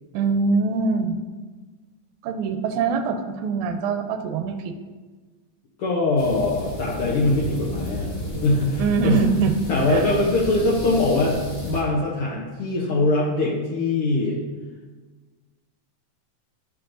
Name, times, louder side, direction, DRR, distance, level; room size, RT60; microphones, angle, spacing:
voice 1, 0.1-1.2 2.2-4.7 8.8-9.5 9.9-10.1, right 5 dB, 85° right, 7 dB, 1.9 m, -23 dB
voice 2, 5.8-8.1 8.4-9.2 9.7-14.4, left 2 dB, 70° left, -4 dB, 1.3 m, -22 dB
sound 1, 6.2-11.8, equal, 45° left, 0.7 m, -32 dB
11.5 x 4.6 x 2.6 m, 1.3 s
omnidirectional pair, 3.4 m